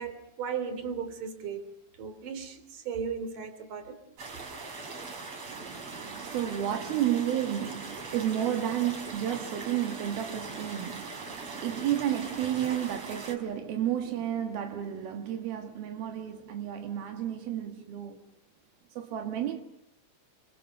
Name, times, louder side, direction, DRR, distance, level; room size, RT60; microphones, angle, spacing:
voice 1, 0.0-1.7 2.0-4.0, right 6 dB, 60° right, 4.4 m, -36 dB
sound 1, 4.2-13.3, right 3 dB, 45° right, 4.5 m, -41 dB
voice 2, 5.5-18.2 19.0-19.6, right 11 dB, 90° right, 3.5 m, -32 dB
28.5 x 27.0 x 6.6 m
omnidirectional pair, 4.2 m